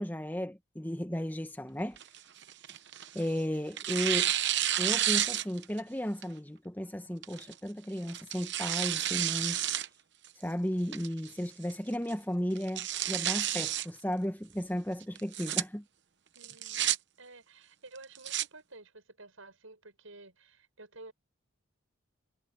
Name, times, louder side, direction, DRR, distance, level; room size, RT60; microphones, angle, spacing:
voice 1, 0.0-2.0 3.1-4.3 4.8-9.6 10.4-15.8, equal, 10° left, 1.3 m, -34 dB
Tearing, 2.0-3.3 3.8-5.8 6.2-6.3 7.2-7.5 8.1-9.9 10.2-10.3 10.9-11.3 11.7-11.8 12.1-12.2 12.6-13.9 15.2-15.6 16.4-17.0 18.0-18.5, right 12 dB, 55° right, 0.9 m, -30 dB
voice 2, 16.4-21.1, right 2 dB, 75° right, 6.9 m, -52 dB
head